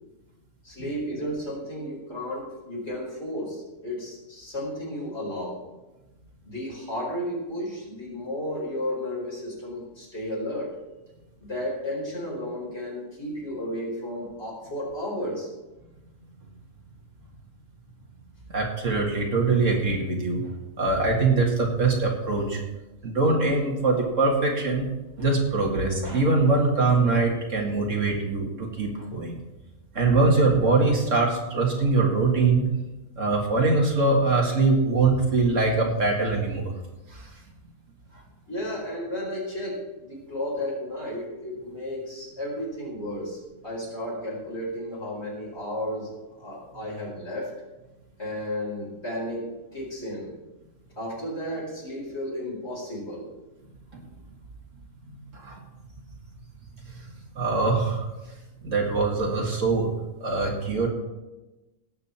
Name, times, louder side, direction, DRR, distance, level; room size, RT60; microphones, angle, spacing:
voice 1, 0.6-5.6 6.4-10.8 11.4-15.5 38.5-46.1 46.3-47.5 48.2-50.3 51.0-53.3, left 1 dB, 50° left, -4 dB, 4.8 m, -33 dB
voice 2, 18.5-22.6 23.0-24.9 25.2-29.4 29.9-32.6 33.2-36.7 37.1-37.3 55.3-55.6 57.4-58.1 58.6-59.9 60.2-60.9, right 3 dB, 60° right, 0 dB, 2.3 m, -23 dB
17.5 x 8.0 x 4.3 m, 1.1 s
omnidirectional pair, 1.5 m